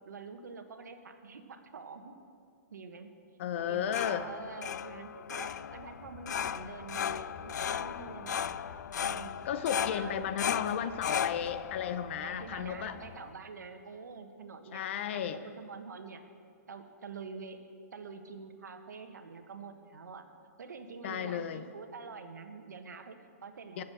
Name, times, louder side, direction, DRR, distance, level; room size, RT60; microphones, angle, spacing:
voice 1, 0.0-2.1 2.7-3.1 3.7-8.6 9.0-9.4 9.7-10.2 10.5-11.0 12.2-14.8 15.1-16.2 16.7-17.6 17.9-20.3 20.6-23.8, right 5 dB, 85° right, 7 dB, 1.4 m, -46 dB
voice 2, 3.4-4.3 9.4-13.0 14.7-15.4 21.0-21.6 23.8-23.9, left 9 dB, 45° left, 12 dB, 0.7 m, -34 dB
sound 1, 3.6-13.3, left 8 dB, 80° left, 0.4 m, -37 dB
sound 2, 5.4-13.1, left 1 dB, 15° left, 3.1 m, -54 dB
14.0 x 7.4 x 7.9 m, 2.3 s
hypercardioid pair, 155°, 9 cm